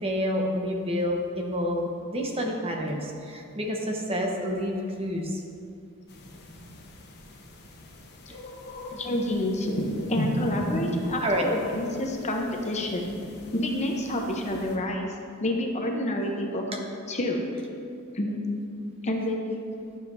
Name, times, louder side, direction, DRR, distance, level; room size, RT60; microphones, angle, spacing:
voice 1, 0.0-5.4 8.3-8.4 8.9-9.0 11.2-11.5, equal, 25° right, 0 dB, 0.9 m, -29 dB
sound 1, 6.1-14.8, equal, 50° left, 1.0 m, -36 dB
voice 2, 9.0-9.7 10.1-13.2 13.5-15.1 15.4-16.8 17.1-17.4 18.1-18.4 19.0-19.6, left 1 dB, 30° left, 1 dB, 0.7 m, -28 dB
12.0 x 7.4 x 2.6 m, 2.5 s
head